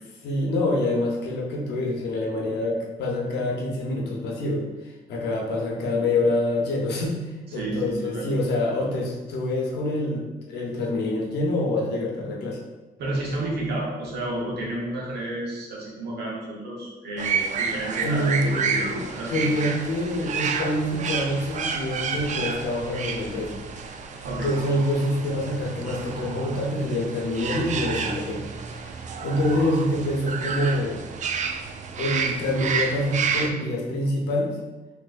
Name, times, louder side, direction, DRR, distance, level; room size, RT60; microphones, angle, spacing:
voice 1, 0.2-12.6 18.0-28.4 28.7-31.1 32.0-34.6, left 1 dB, 85° left, -1 dB, 0.8 m, -26 dB
voice 2, 7.5-8.3 13.0-18.3 19.1-19.6 24.2-24.5, right 1 dB, 80° right, -4 dB, 1.1 m, -31 dB
sound 1, 17.2-33.5, right 6 dB, 45° right, 0.4 m, -30 dB
3.7 x 2.9 x 2.5 m, 1.1 s
cardioid pair, 80°, 17 cm